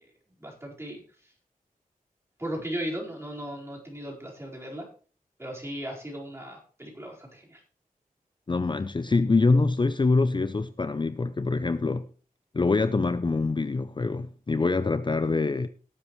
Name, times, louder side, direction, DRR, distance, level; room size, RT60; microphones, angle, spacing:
voice 1, 0.4-1.0 2.4-4.9 5.4-7.6, equal, 20° right, 4.7 m, -36 dB
voice 2, 8.5-12.1 12.5-15.7, left 3 dB, 35° left, 0.5 m, -25 dB
18.0 x 8.5 x 3.2 m
wide cardioid pair, 105°, 14 cm